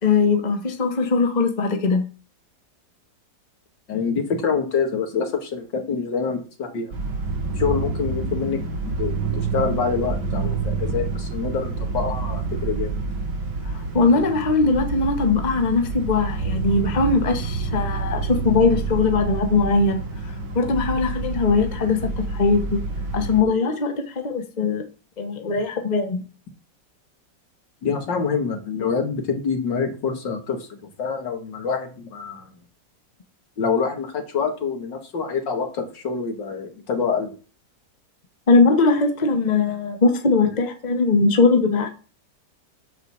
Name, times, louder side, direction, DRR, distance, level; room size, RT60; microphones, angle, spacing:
voice 1, 0.0-2.0 13.9-20.0 20.5-22.8 23.1-24.8 25.2-26.2 38.5-41.9, left 4 dB, 25° left, 1.2 m, -20 dB
voice 2, 3.9-6.9 7.6-8.6 8.9-9.1 9.4-12.9 27.8-32.5 33.6-37.4, left 5 dB, 75° left, 2.5 m, -26 dB
sound 1, 6.9-23.4, right 3 dB, 70° right, 2.3 m, -28 dB
9.4 x 4.7 x 7.1 m
omnidirectional pair, 2.0 m